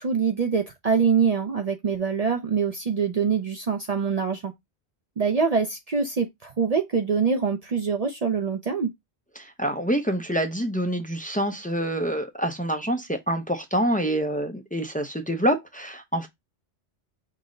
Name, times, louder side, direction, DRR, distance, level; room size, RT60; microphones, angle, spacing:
voice 1, 0.0-4.5 5.2-8.9, right 6 dB, 50° right, 0.5 m, -24 dB
voice 2, 9.4-16.3, right 1 dB, 15° left, 0.3 m, -26 dB
5.3 x 2.1 x 3.7 m
omnidirectional pair, 1.1 m